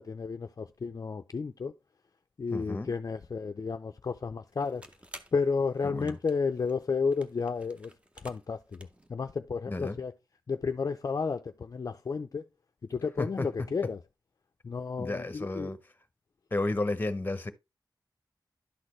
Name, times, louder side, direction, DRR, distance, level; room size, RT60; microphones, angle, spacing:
voice 1, 0.0-1.7 2.4-4.8 5.3-7.9 8.2-10.1 10.5-12.4 12.9-14.0 14.6-15.7, left 5 dB, 45° left, 0.4 m, -32 dB
voice 2, 2.5-2.9 5.8-6.2 9.7-10.0 13.2-13.5 15.0-15.8 16.5-17.5, left 2 dB, 25° left, 0.7 m, -32 dB
sound 1, 4.5-9.1, right 1 dB, 15° right, 0.7 m, -53 dB
11.5 x 4.1 x 3.0 m
wide cardioid pair, 120°, 8 cm